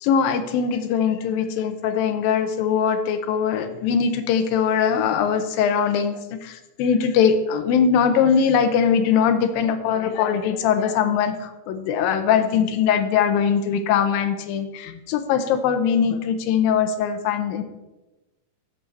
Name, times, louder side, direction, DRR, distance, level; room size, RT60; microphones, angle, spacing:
voice 1, 0.0-6.1 6.4-17.6, left 7 dB, 85° left, 9 dB, 2.5 m, -21 dB
11.0 x 7.8 x 4.2 m, 1.0 s
omnidirectional pair, 4.1 m